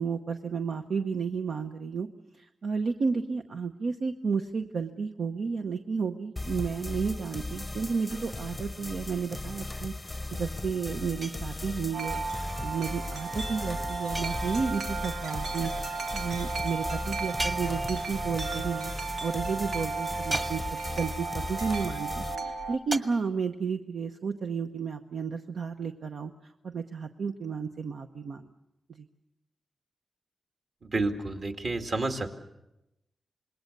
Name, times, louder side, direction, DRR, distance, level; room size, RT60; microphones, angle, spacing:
voice 1, 0.0-2.1 2.4-15.7 16.1-18.9 19.2-20.6 21.0-28.5 29.0-29.1, right 5 dB, 65° right, 6 dB, 0.9 m, -32 dB
sound 1, 6.4-22.4, left 2 dB, 15° left, 0.7 m, -37 dB
sound 2, 11.2-11.9 14.1-14.9 17.4-18.3 20.3-21.1 22.9-23.0, right 1 dB, 25° right, 1.7 m, -37 dB
Wind chime, 11.9-22.8, right 4 dB, 90° right, 2.0 m, -34 dB
voice 2, 30.8-32.3, right 2 dB, 50° right, 5 dB, 2.2 m, -30 dB
27.0 x 21.0 x 6.7 m, 0.91 s
wide cardioid pair, 135°, 0 cm